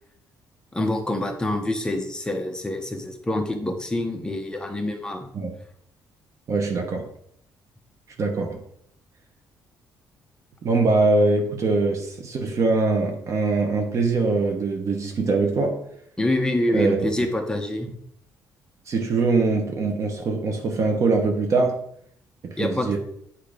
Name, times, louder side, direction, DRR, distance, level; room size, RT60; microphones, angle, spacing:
voice 1, 0.7-5.3 16.2-17.9 22.6-23.0, left 1 dB, 10° left, 0.8 m, -26 dB
voice 2, 6.5-7.1 8.2-8.6 10.6-15.8 16.7-17.1 18.9-21.8 22.4-23.0, right 3 dB, 45° right, 1.0 m, -22 dB
8.4 x 2.8 x 5.0 m
cardioid pair, 135°, 7 cm